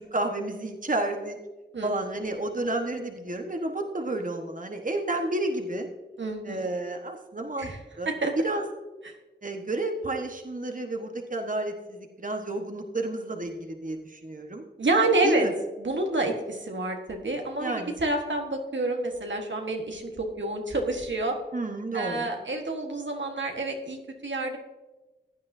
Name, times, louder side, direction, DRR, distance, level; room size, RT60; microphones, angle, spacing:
voice 1, 0.1-1.4 1.8-5.9 6.4-7.7 8.0-8.1 8.4-8.6 9.4-14.6 15.2-15.5 17.6-17.9 21.5-22.3, right 2 dB, 45° right, 4 dB, 1.3 m, -31 dB
voice 2, 1.7-2.1 6.2-6.7 7.6-7.8 8.0-8.3 9.0-9.1 14.8-15.5 15.8-21.3 21.9-24.6, right 2 dB, 85° right, 2 dB, 1.4 m, -28 dB
15.5 x 9.6 x 2.7 m, 1.1 s
wide cardioid pair, 45°, 19 cm